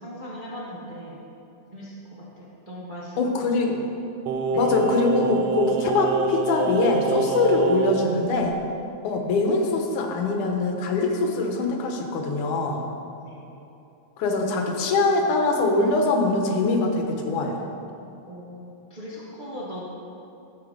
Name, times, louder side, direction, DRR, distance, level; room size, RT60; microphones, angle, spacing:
voice 1, 0.0-1.2 1.7-3.2 3.6-3.8 4.5-4.7 13.2-13.4 18.3-19.8, equal, 40° right, -6 dB, 0.6 m, -39 dB
voice 2, 3.2-3.8 4.6-8.6 9.0-12.9 14.2-17.6, left 3 dB, 90° left, 3 dB, 2.5 m, -23 dB
Singing, 4.3-8.1 8.4-8.5, right 4 dB, 75° right, 1.5 m, -26 dB
13.0 x 7.2 x 5.0 m, 2.8 s
omnidirectional pair, 3.4 m